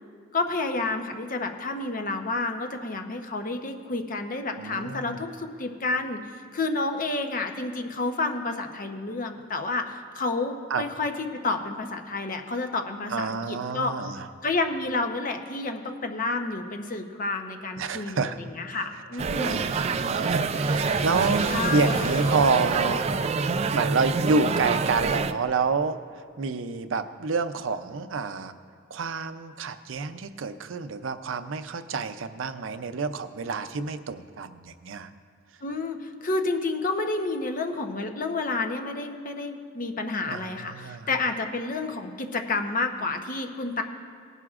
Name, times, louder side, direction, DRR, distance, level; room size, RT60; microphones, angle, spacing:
voice 1, 0.3-6.2 6.5-13.9 14.4-19.6 21.5-22.0 35.6-43.8, left 3 dB, 45° left, 5 dB, 0.8 m, -30 dB
voice 2, 4.6-5.3 10.7-10.8 13.1-14.3 17.8-18.4 18.7-18.9 19.4-23.3 23.7-28.5 28.9-35.1 40.3-41.1, right 4 dB, 85° right, 11 dB, 0.5 m, -28 dB
sound 1, 19.2-25.3, right 4 dB, 35° right, 0.3 m, -26 dB
sound 2, 20.1-24.1, left 2 dB, 80° left, 0.7 m, -36 dB
18.5 x 10.5 x 2.5 m, 2.2 s
head